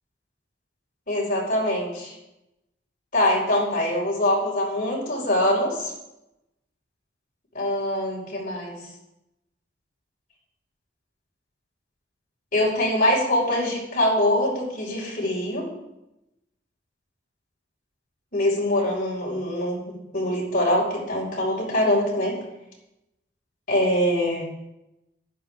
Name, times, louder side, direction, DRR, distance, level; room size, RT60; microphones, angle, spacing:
voice 1, 1.1-2.1 3.1-5.9 7.5-8.8 12.5-15.7 18.3-22.4 23.7-24.5, left 1 dB, 45° left, -4 dB, 5.4 m, -23 dB
15.0 x 12.0 x 3.8 m, 0.89 s
head